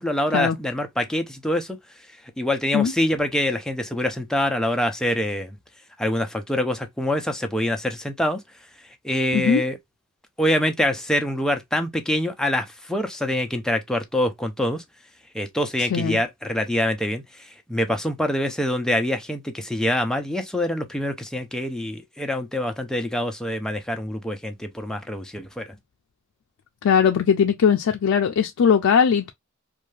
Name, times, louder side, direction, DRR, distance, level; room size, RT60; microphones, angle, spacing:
voice 1, 0.0-1.8 2.4-5.6 6.0-8.4 9.0-9.8 10.4-14.8 15.3-25.7, left 1 dB, 5° left, 0.4 m, -25 dB
voice 2, 26.8-29.3, left 7 dB, 80° left, 0.4 m, -19 dB
2.6 x 2.3 x 3.1 m
head